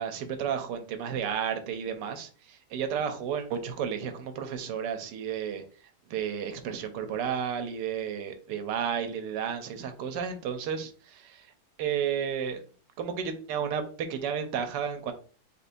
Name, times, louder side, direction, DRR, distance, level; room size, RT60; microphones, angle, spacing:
voice 1, 0.0-5.6 6.1-11.5 11.8-12.6 13.0-15.1, right 7 dB, 90° right, 7 dB, 1.3 m, -32 dB
4.2 x 3.4 x 2.6 m, 0.41 s
omnidirectional pair, 1.8 m